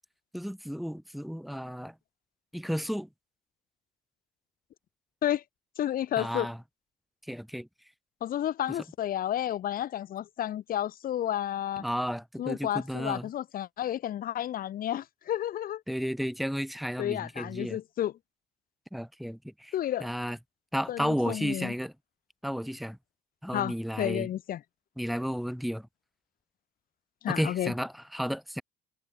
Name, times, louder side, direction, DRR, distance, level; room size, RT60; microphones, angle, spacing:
voice 1, 0.3-1.9 2.5-3.1 6.2-6.6 7.3-7.7 8.7-8.8 11.8-13.3 15.9-17.8 18.9-19.7 20.0-20.4 20.7-21.9 22.4-23.0 23.4-24.3 25.0-25.9 27.3-28.6, equal, ahead, 4.3 m, -33 dB
voice 2, 5.8-6.5 8.2-11.8 12.4-15.8 17.0-18.1 19.7-20.1 20.9-21.7 23.5-24.6 27.2-27.7, left 11 dB, 60° left, 1.7 m, -31 dB
cardioid pair, 110°, 17 cm